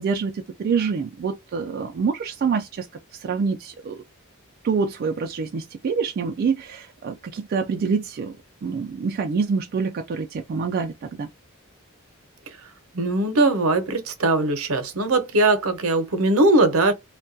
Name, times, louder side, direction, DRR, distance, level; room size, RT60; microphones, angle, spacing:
voice 1, 0.0-2.9 3.1-4.0 4.6-8.3 8.6-11.3, right 5 dB, 45° right, 0.3 m, -26 dB
voice 2, 12.9-16.9, right 2 dB, 75° right, 0.7 m, -20 dB
2.3 x 2.2 x 2.5 m
head